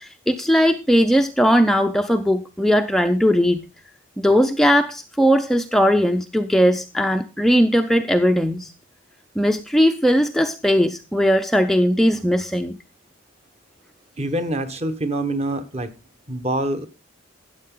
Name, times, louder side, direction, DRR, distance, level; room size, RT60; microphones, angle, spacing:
voice 1, 0.0-3.6 4.2-8.7 9.4-12.8, equal, ahead, 0.5 m, -18 dB
voice 2, 14.2-15.9 16.3-16.9, right 1 dB, 30° right, 1.2 m, -25 dB
13.0 x 9.3 x 3.8 m
head